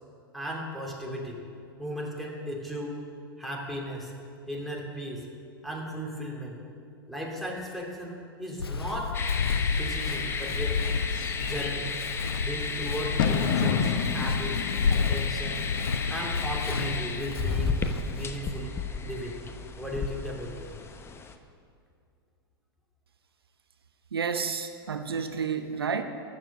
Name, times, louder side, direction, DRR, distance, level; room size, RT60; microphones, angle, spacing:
voice 1, 0.3-1.4 1.8-3.0 3.4-4.1 4.5-5.3 5.6-6.6 7.1-9.2 9.7-10.8 11.4-11.9 12.4-14.6 14.9-15.7 16.1-18.7 19.0-19.4 19.8-20.7, equal, ahead, -2 dB, 2.8 m, -36 dB
Walk footsteps, 8.6-18.2, left 5 dB, 90° left, 0.5 m, -31 dB
sound 1, 9.1-21.4, left 4 dB, 20° left, 0.9 m, -34 dB
Bird / Fireworks, 9.2-18.4, left 6 dB, 60° left, 1.2 m, -34 dB
voice 2, 24.1-26.0, right 6 dB, 80° right, 8 dB, 0.8 m, -30 dB
13.5 x 7.3 x 7.5 m, 2.4 s
figure-of-eight pair, 95°, 12 cm